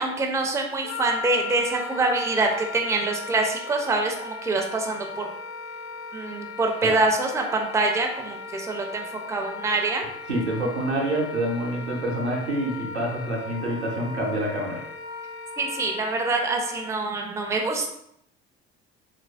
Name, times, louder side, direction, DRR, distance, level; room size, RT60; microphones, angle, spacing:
voice 1, 0.0-5.2 6.1-10.1 15.6-17.9, right 3 dB, 10° right, 2 dB, 0.4 m, -25 dB
Wind instrument woodwind instrument, 0.8-16.9, left 4 dB, 70° left, 0.5 m, -37 dB
voice 2, 10.3-14.9, right 1 dB, 85° right, -1 dB, 0.7 m, -27 dB
3.1 x 2.5 x 2.4 m, 0.75 s
figure-of-eight pair, 55°, 33 cm